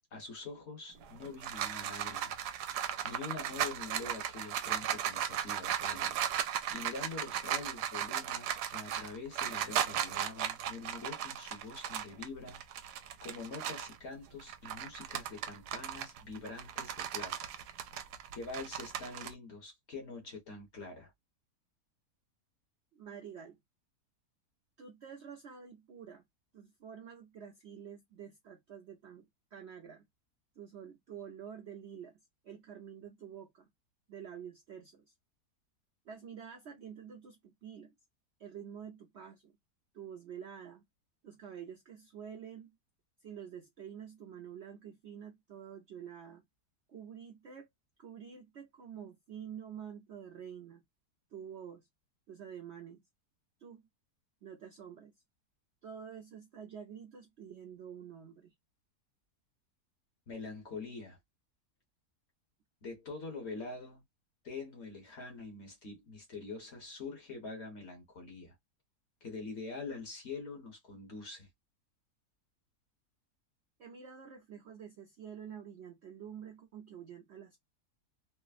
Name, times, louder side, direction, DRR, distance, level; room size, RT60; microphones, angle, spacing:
voice 1, 0.1-2.3 3.0-6.2 6.7-12.6 13.2-17.5 18.3-21.1 60.3-61.2 62.8-64.0 64.4-68.6 69.2-71.5, left 3 dB, 45° left, 1.2 m, -45 dB
sound 1, 1.0-14.0 14.4-19.3, right 10 dB, 80° right, 1.1 m, -36 dB
voice 2, 22.9-23.6 24.8-26.2 26.5-30.0 30.6-32.2 32.4-33.7 34.1-35.1 36.1-37.9 38.4-39.6 39.9-40.8 41.2-42.7 43.2-46.4 46.9-47.7 48.0-50.8 51.3-51.9 52.3-53.0 53.6-53.8 54.4-55.1 55.8-58.5 73.8-77.6, right 8 dB, 60° right, 0.7 m, -48 dB
3.3 x 2.0 x 2.3 m
omnidirectional pair, 1.7 m